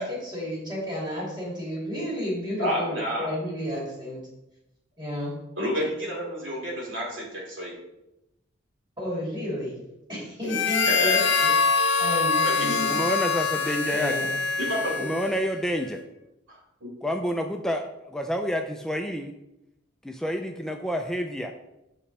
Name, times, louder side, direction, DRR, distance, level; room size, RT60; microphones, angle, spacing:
voice 1, 0.0-4.2 5.0-5.3 9.0-9.8 10.1-11.5 12.0-12.9 13.9-14.3, left 1 dB, 25° right, -5 dB, 2.9 m, -32 dB
voice 2, 2.6-3.3 5.6-7.7 10.9-11.3 12.4-13.0 14.6-15.2 16.5-16.9, equal, 75° right, -2 dB, 3.0 m, -30 dB
Harmonica, 10.5-15.5, left 5 dB, 65° left, 1.0 m, -24 dB
voice 3, 12.9-14.2 15.0-16.0 17.0-19.3 20.0-21.5, equal, 5° left, 3 dB, 0.4 m, -29 dB
7.3 x 5.7 x 4.2 m, 0.91 s
head